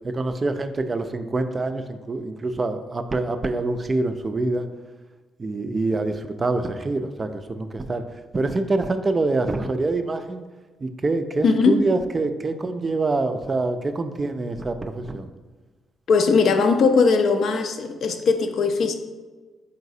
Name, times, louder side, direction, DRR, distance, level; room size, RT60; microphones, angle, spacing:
voice 1, 0.0-4.7 5.4-8.0 8.3-10.4 10.8-15.3, right 2 dB, 30° right, 8 dB, 0.3 m, -25 dB
voice 2, 11.4-11.8 16.1-18.9, left 4 dB, 65° left, 7 dB, 0.4 m, -19 dB
3.9 x 3.9 x 2.6 m, 1.3 s
cardioid pair, 90°, 0 cm